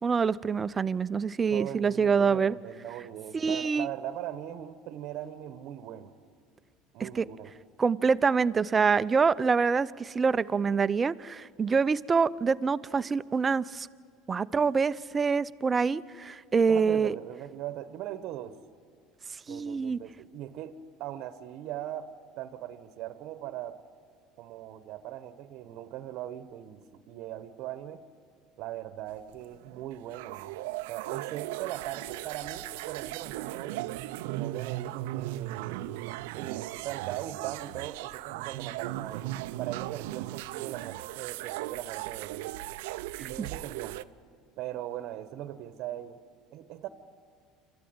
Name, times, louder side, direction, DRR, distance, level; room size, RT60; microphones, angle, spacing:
voice 1, 0.0-2.6 3.3-3.9 7.0-7.3 7.8-13.9 14.3-17.1 19.5-20.0, right 5 dB, 25° right, 15 dB, 0.6 m, -26 dB
voice 2, 1.5-6.1 6.9-7.5 16.7-18.6 19.5-22.1 22.4-23.8 24.4-28.0 28.6-33.8 34.2-35.9 36.3-42.5 43.2-44.0 44.6-46.2 46.5-46.9, right 12 dB, 60° right, 13 dB, 1.0 m, -40 dB
sound 1, 29.1-44.0, right 16 dB, 80° right, 0.5 m, -37 dB
26.5 x 13.0 x 9.5 m, 2.1 s
supercardioid pair, 95°, 0 cm